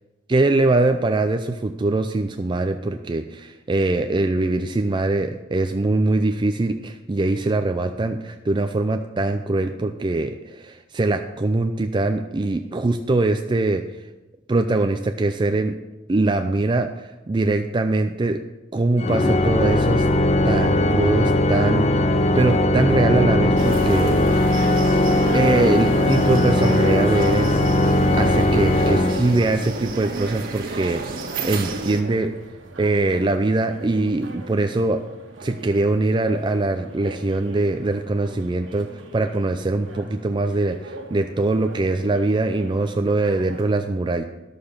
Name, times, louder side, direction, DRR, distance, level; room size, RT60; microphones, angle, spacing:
voice 1, 0.3-13.8 14.5-15.8 16.1-18.4 18.7-20.0 20.4-22.1 22.4-24.1 25.3-27.5 28.1-32.3 32.8-35.0 35.4-44.2, right 2 dB, 25° right, 7 dB, 0.4 m, -22 dB
Organ, 19.0-29.8, left 1 dB, 35° left, 0.5 m, -19 dB
sound 1, 23.6-32.0, right 3 dB, 50° right, 1.6 m, -31 dB
sound 2, 30.6-43.7, right 2 dB, 80° right, 1.4 m, -42 dB
11.5 x 6.8 x 5.6 m, 1.1 s
head